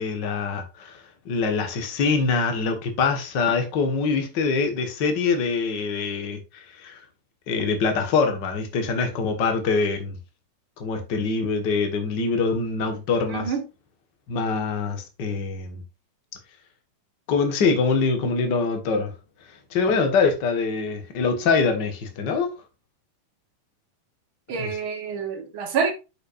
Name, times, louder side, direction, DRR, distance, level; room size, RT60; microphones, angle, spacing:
voice 1, 0.0-7.0 7.5-10.2 10.8-13.5 14.3-15.8 17.3-19.1 19.7-22.5 24.6-24.7, left 4 dB, 40° left, 1.7 m, -24 dB
voice 2, 13.3-13.7 24.5-25.9, right 6 dB, 55° right, 1.6 m, -27 dB
8.5 x 6.5 x 2.6 m
omnidirectional pair, 3.6 m